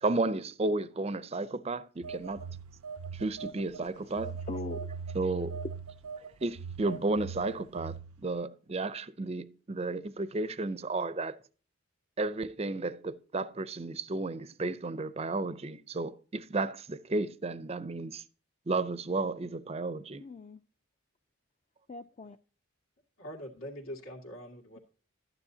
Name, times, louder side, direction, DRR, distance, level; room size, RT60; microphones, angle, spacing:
voice 1, 0.0-2.5 3.1-4.3 5.1-5.6 6.4-11.4 12.2-18.2 18.7-20.2, right 2 dB, 30° right, 0.5 m, -33 dB
Telephone, 2.0-3.8 4.2-8.3, right 5 dB, 85° right, 0.5 m, -40 dB
voice 2, 3.8-5.1 5.4-5.5 6.0-6.3 20.2-20.6 21.9-22.4, left 2 dB, 30° left, 0.4 m, -43 dB
voice 3, 23.2-24.8, equal, 85° left, 2.5 m, -43 dB
12.0 x 9.8 x 2.7 m
head